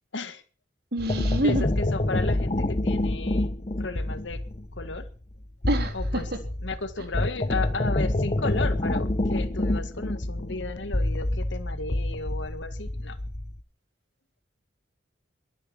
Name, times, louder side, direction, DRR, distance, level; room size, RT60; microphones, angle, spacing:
voice 1, 0.9-1.7 5.7-6.2, right 1 dB, 55° right, 7 dB, 3.7 m, -26 dB
sound 1, 1.0-13.6, left 1 dB, 35° left, 0.9 m, -27 dB
voice 2, 1.4-3.5 3.8-4.4 4.7-5.1 5.9-6.3 6.6-13.2, left 3 dB, 75° left, 11 dB, 1.9 m, -34 dB
22.5 x 10.0 x 6.2 m, 0.40 s
head